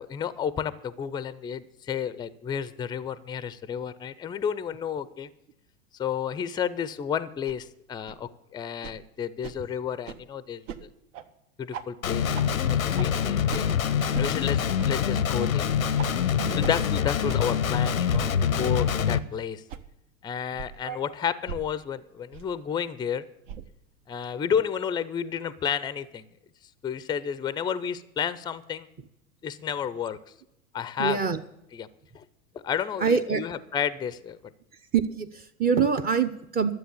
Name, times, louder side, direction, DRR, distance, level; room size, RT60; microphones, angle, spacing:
voice 1, 0.0-5.3 5.9-10.9 11.6-12.3 12.7-13.7 14.2-15.8 16.5-19.6 20.2-23.3 24.1-26.2 26.8-28.9 29.4-30.2 30.7-31.2 31.7-31.9 32.1-32.2 32.6-34.4, left 8 dB, 10° left, 17 dB, 0.5 m, -31 dB
sound 1, 7.5-7.6 8.1-8.2 8.8-9.0 9.4-9.6 10.0-10.2 10.7-10.8 11.1-11.3 11.7-11.9 12.3-12.5 13.0-13.1 13.5-13.6 14.1-14.3 14.8-14.9 15.4-15.5 16.0-16.1 16.6-16.7 17.3-17.4 18.1-18.2 18.9-19.0 19.7-19.8 20.6-20.7 21.5-21.6 22.3-22.4 23.5-23.7, right 8 dB, 65° right, 1.2 m, -37 dB
Guitar, 12.0-19.2, left 8 dB, 85° left, 0.8 m, -25 dB
voice 2, 20.8-21.1 31.0-31.4 33.0-33.4 34.9-36.7, right 6 dB, 20° right, 8 dB, 0.7 m, -25 dB
12.5 x 7.7 x 8.2 m, 0.83 s
figure-of-eight pair, 90°, 41 cm